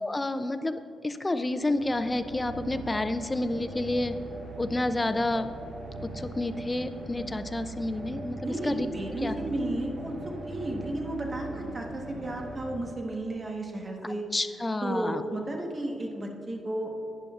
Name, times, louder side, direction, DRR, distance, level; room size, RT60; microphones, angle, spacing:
voice 1, 0.0-4.1 4.6-5.5 6.1-8.9 9.2-9.4 14.3-15.2, left 2 dB, 15° left, 10 dB, 0.4 m, -29 dB
sound 1, 1.5-13.4, right 2 dB, 75° right, 2.1 m, -41 dB
voice 2, 8.4-10.1 10.5-14.2 14.8-16.9, right 1 dB, 30° right, 1 dB, 1.1 m, -33 dB
11.5 x 9.0 x 2.4 m, 2.5 s
cardioid pair, 135°, 0 cm